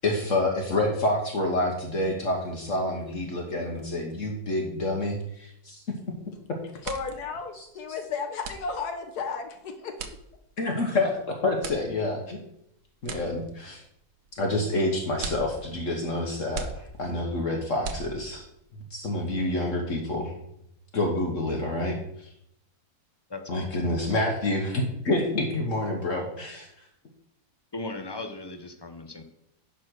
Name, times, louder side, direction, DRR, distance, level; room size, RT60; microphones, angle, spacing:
voice 1, 0.0-5.8 10.6-12.4 13.0-13.8 14.4-18.4 18.9-20.3 20.9-22.3 23.5-26.7, left 2 dB, 55° left, 1 dB, 1.5 m, -28 dB
sound 1, 6.1-6.4 6.7-18.6, right 5 dB, 85° right, 1.5 m, -41 dB
voice 2, 6.8-10.0, left 5 dB, 80° left, 5 dB, 1.5 m, -33 dB
voice 3, 23.3-23.9 27.7-29.2, left 2 dB, 25° left, 7 dB, 0.6 m, -38 dB
10.5 x 4.2 x 6.3 m, 0.77 s
omnidirectional pair, 1.7 m